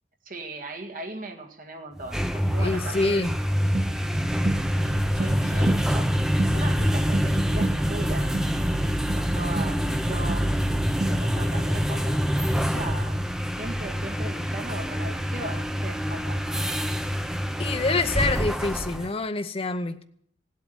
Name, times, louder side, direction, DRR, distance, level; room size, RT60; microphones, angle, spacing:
voice 1, 0.2-3.3 4.6-6.1 6.5-8.3 8.7-8.9 9.1-10.6 10.9-13.2 13.6-16.6 17.6-17.9, right 2 dB, 50° right, 2.0 m, -38 dB
sound 1, 2.0-19.1, equal, 5° right, 0.8 m, -26 dB
voice 2, 2.6-3.3 17.6-20.0, left 3 dB, 35° left, 0.8 m, -26 dB
sound 2, 3.7-11.5, right 2 dB, 35° right, 0.5 m, -33 dB
17.0 x 8.5 x 8.0 m
head